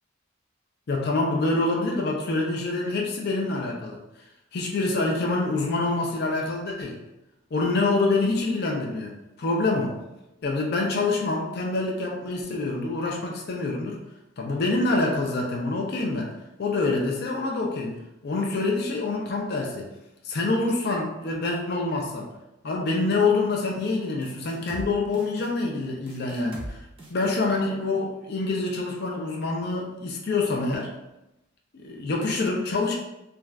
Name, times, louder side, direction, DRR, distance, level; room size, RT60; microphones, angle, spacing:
voice 1, 0.9-4.0 4.5-7.0 7.5-10.0 10.4-14.0 14.4-16.3 16.6-18.0 18.2-19.9 20.2-22.3 22.6-26.8 27.1-30.9 31.7-32.9, left 3 dB, 55° left, 0 dB, 0.4 m, -26 dB
sound 1, 24.2-24.9 25.1-25.5 26.1-26.7 27.0-27.3, right 1 dB, 25° right, 0.5 m, -39 dB
2.4 x 2.3 x 3.2 m, 0.92 s
head